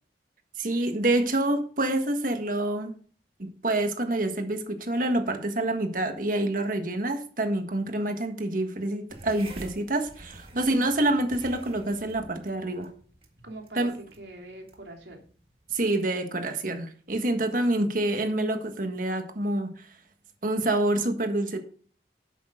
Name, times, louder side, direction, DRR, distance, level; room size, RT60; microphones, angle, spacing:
voice 1, 0.6-2.9 3.4-12.9 13.7-14.0 15.7-19.9 20.4-21.6, right 1 dB, 50° right, 1.5 m, -27 dB
sound 1, 9.1-16.0, right 2 dB, 35° right, 1.9 m, -49 dB
voice 2, 10.5-10.9 13.4-13.9 14.2-15.2, right 2 dB, 75° right, 2.9 m, -44 dB
11.0 x 8.5 x 3.8 m
head